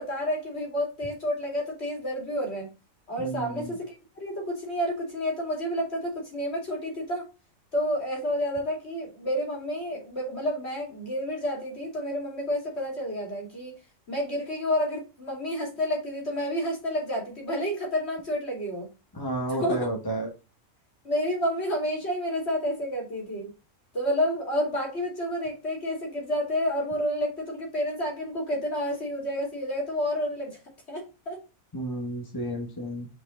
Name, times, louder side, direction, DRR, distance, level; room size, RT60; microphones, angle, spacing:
voice 1, 0.0-2.7 3.1-3.9 4.2-7.3 7.7-13.7 14.1-18.9 19.5-19.9 21.0-23.5 23.9-30.6 30.9-31.4, equal, 45° left, -1 dB, 2.9 m, -30 dB
voice 2, 3.2-3.7 19.1-20.3 31.7-33.1, right 1 dB, 15° left, 1 dB, 1.2 m, -31 dB
5.3 x 4.7 x 3.8 m, 0.30 s
omnidirectional pair, 1.5 m